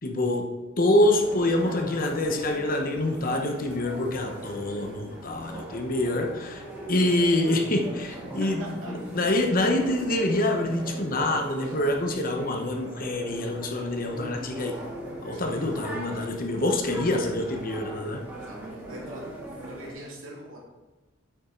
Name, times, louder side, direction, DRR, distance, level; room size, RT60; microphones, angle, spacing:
voice 1, 0.0-14.8 15.2-18.3, left 1 dB, 45° left, 3 dB, 1.0 m, -26 dB
sound 1, 1.0-19.9, right 1 dB, 10° right, 2.6 m, -40 dB
voice 2, 8.6-8.9 11.6-11.8 15.3-15.6 18.3-19.2 19.5-20.6, right 1 dB, 75° right, -3 dB, 2.7 m, -43 dB
8.3 x 7.6 x 3.9 m, 1.2 s
head